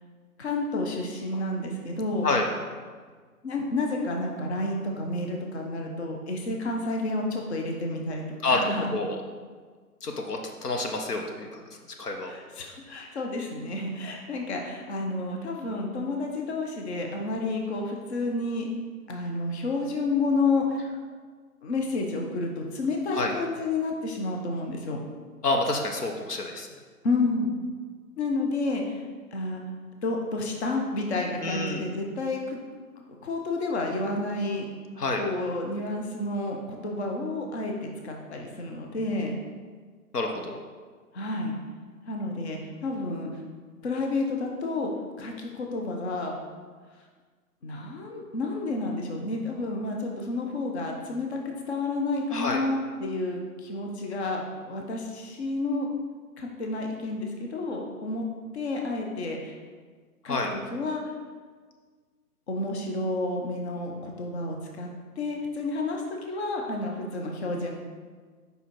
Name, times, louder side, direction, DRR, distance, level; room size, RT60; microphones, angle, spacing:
voice 1, 0.4-2.3 3.4-8.9 12.2-18.7 19.1-20.8 21.6-25.0 27.0-27.6 28.2-29.0 29.3-29.6 30.0-32.6 33.2-34.7 35.2-39.4 41.1-41.5 42.1-43.3 43.8-44.9 45.2-46.3 47.6-54.4 54.7-55.9 56.4-58.2 58.5-59.5 60.2-60.4 60.7-61.0 62.5-64.9 65.2-67.7, left 2 dB, 45° left, 1 dB, 0.9 m, -30 dB
voice 2, 10.0-11.6 12.0-12.3 23.1-23.3 25.4-26.7 31.4-31.8 35.0-35.2 40.1-40.5 52.3-52.6 60.3-60.5, left 3 dB, 80° left, 3 dB, 1.0 m, -28 dB
5.1 x 4.8 x 4.6 m, 1.5 s
hypercardioid pair, 150°, 46 cm